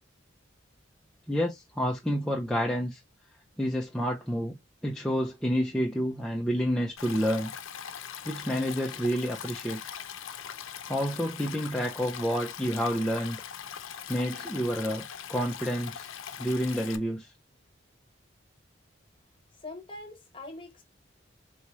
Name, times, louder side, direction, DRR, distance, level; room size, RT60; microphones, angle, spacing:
voice 1, 1.3-3.0 3.6-4.6 4.8-7.5 8.3-9.8 10.9-13.4 14.1-15.0 15.3-16.1 16.4-17.3, equal, 5° left, 0.5 m, -29 dB
Stream, 7.0-17.0, left 8 dB, 90° left, 0.6 m, -41 dB
voice 2, 19.6-20.8, left 2 dB, 25° left, 1.3 m, -43 dB
4.3 x 3.5 x 3.0 m
head